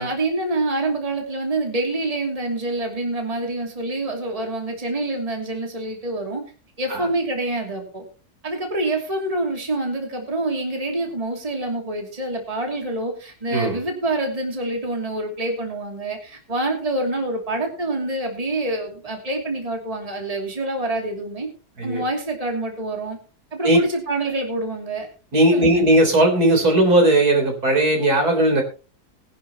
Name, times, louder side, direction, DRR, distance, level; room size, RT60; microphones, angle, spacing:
voice 1, 0.0-6.4 6.8-8.0 8.4-21.5 21.8-23.2 23.5-25.1 25.5-25.9, right 2 dB, 20° right, 2 dB, 2.9 m, -26 dB
voice 2, 25.3-28.6, right 1 dB, 65° right, 3 dB, 4.4 m, -17 dB
20.0 x 11.0 x 3.0 m, 0.35 s
omnidirectional pair, 1.8 m